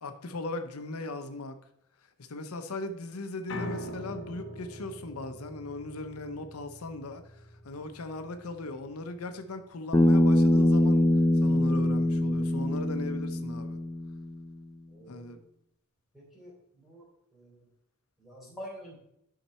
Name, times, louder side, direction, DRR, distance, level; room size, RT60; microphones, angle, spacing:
voice 1, 0.0-1.6 2.2-11.1 11.3-13.8 15.1-15.4, left 2 dB, 90° left, 7 dB, 0.8 m, -38 dB
Piano, 3.5-9.7, equal, 55° left, 1.0 m, -43 dB
Bass guitar, 9.9-14.3, left 1 dB, 15° left, 0.6 m, -23 dB
voice 2, 14.9-15.3 16.1-16.5 16.8-17.0 17.3-17.5 18.2-19.0, equal, ahead, -4 dB, 3.0 m, -46 dB
10.0 x 5.8 x 4.3 m, 0.76 s
head